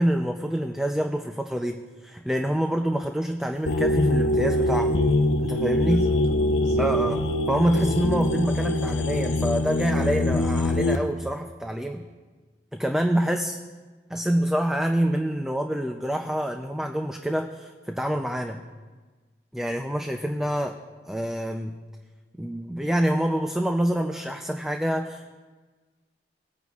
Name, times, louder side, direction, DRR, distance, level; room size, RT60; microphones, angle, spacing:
voice 1, 0.0-5.0 5.4-6.0 6.8-7.2 7.5-12.0 12.8-13.6 14.1-18.6 19.5-20.8 21.1-21.8 22.4-25.3, right 1 dB, 5° right, 4 dB, 0.4 m, -26 dB
sound 1, 3.7-11.0, left 1 dB, 80° left, 0.7 m, -23 dB
voice 2, 5.8-6.9, left 1 dB, 40° right, -4 dB, 3.0 m, -38 dB
19.5 x 9.3 x 2.4 m, 1.4 s
head